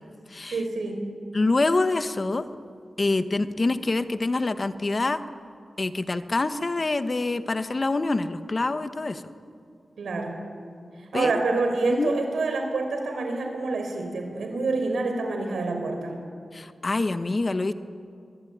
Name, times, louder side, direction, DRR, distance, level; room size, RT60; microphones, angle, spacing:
voice 1, 0.5-1.1 10.0-10.4 11.0-16.2, right 3 dB, 90° right, 4 dB, 5.1 m, -27 dB
voice 2, 1.3-2.5 3.0-5.2 5.8-9.2 11.1-11.4 11.9-12.1 16.5-17.7, left 2 dB, 40° left, 10 dB, 1.2 m, -25 dB
23.5 x 22.0 x 9.5 m, 2.3 s
wide cardioid pair, 75°, 0 cm